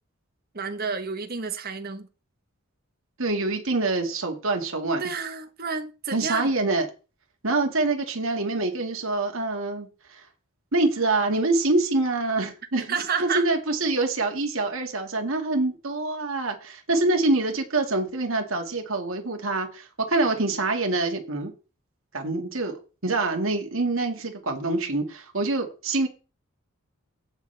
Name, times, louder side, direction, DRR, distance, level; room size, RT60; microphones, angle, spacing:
voice 1, 0.5-2.1 5.0-6.5 12.7-13.5, right 5 dB, 45° right, 1.2 m, -30 dB
voice 2, 3.2-5.0 6.1-6.9 7.4-10.2 10.7-21.5 22.1-26.1, right 2 dB, 70° right, 2.1 m, -25 dB
17.0 x 5.9 x 3.4 m
head